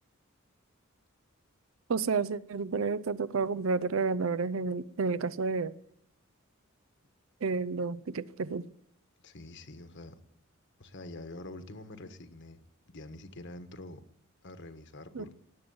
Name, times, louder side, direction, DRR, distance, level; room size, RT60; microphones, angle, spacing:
voice 1, 1.9-5.7 7.4-8.7 15.1-15.3, right 4 dB, 70° right, 17 dB, 0.6 m, -30 dB
voice 2, 9.2-10.2 10.8-12.6 12.9-14.0 14.4-15.4, left 2 dB, 60° left, 9 dB, 1.4 m, -46 dB
19.0 x 7.9 x 9.4 m, 0.77 s
head